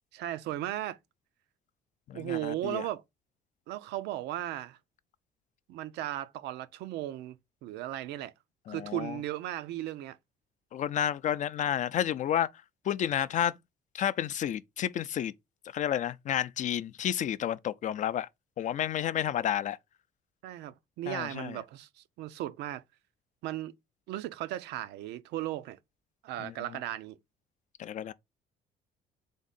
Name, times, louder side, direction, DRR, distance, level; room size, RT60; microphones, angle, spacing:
voice 1, 0.1-1.0 2.1-3.0 3.7-4.8 5.7-8.3 8.7-10.2 20.4-22.8 23.4-23.7 24.1-25.8 26.2-27.2, right 13 dB, 85° right, 0.5 m, -36 dB
voice 2, 2.1-2.9 8.7-9.2 10.7-12.5 12.8-13.5 13.9-15.3 15.7-18.3 18.6-19.8 21.1-21.6 26.4-26.5 27.8-28.1, left 10 dB, 45° left, 0.4 m, -31 dB
3.6 x 3.6 x 4.0 m
cardioid pair, 110°, 17 cm